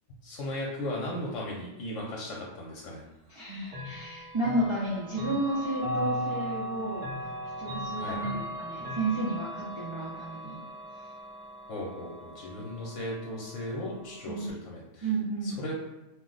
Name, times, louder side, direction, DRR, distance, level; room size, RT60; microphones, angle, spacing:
voice 1, 0.2-3.0 8.0-8.4 11.7-15.1 15.4-15.7, left 1 dB, 85° left, -3 dB, 1.0 m, -37 dB
voice 2, 3.3-7.1 7.6-10.6 12.5-12.6 14.3-14.4 15.0-15.6, right 2 dB, 45° right, -7 dB, 0.3 m, -32 dB
Chime / Clock, 3.7-14.5, equal, 70° right, 0.9 m, -38 dB
2.4 x 2.1 x 3.8 m, 0.96 s
omnidirectional pair, 1.3 m